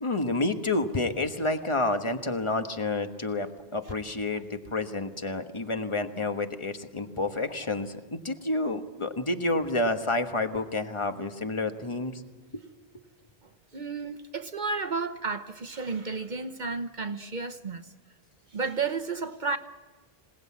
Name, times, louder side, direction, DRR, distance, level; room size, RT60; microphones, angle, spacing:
voice 1, 0.0-12.2 12.5-12.6, left 2 dB, 30° left, 1.3 m, -29 dB
voice 2, 13.7-17.9 18.5-19.6, right 4 dB, 50° right, 1.0 m, -32 dB
26.5 x 18.0 x 8.5 m
omnidirectional pair, 1.1 m